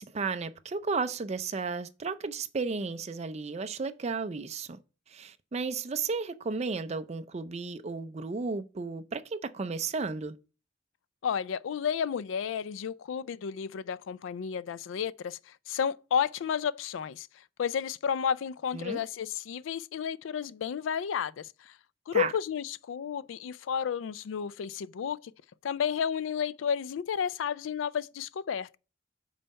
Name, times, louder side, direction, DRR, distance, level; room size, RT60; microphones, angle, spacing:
voice 1, 0.0-4.8 5.1-10.4 18.7-19.0 22.1-22.3, right 4 dB, 35° right, 0.5 m, -33 dB
voice 2, 11.2-21.8 22.1-25.3 25.6-28.8, left 7 dB, 80° left, 0.3 m, -32 dB
5.5 x 4.1 x 5.3 m
head